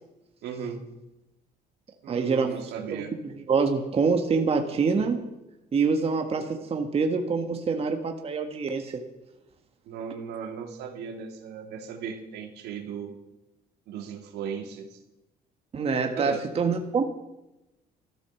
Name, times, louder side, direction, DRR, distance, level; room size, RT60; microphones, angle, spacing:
voice 1, 0.4-0.8 2.0-3.1 9.8-13.2 13.9-15.0 16.2-16.4, right 7 dB, 80° right, 3 dB, 2.4 m, -36 dB
voice 2, 2.1-2.6 2.9-5.2 5.7-9.0 15.7-17.0, right 5 dB, 35° right, 4 dB, 1.5 m, -26 dB
13.5 x 12.0 x 7.1 m, 0.95 s
cardioid pair, 110°, 17 cm